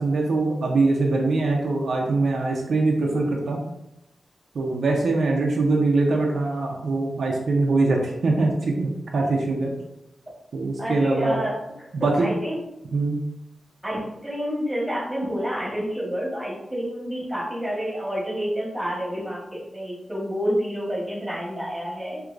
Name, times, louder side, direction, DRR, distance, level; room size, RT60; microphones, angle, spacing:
voice 1, 0.0-3.6 4.5-9.7 10.5-11.4 11.9-12.3 12.9-13.2, right 3 dB, 85° right, 0 dB, 0.6 m, -22 dB
voice 2, 10.8-11.6 12.0-12.5 13.8-22.2, equal, 10° right, -5 dB, 1.4 m, -29 dB
4.5 x 2.8 x 2.5 m, 0.85 s
wide cardioid pair, 130°, 0 cm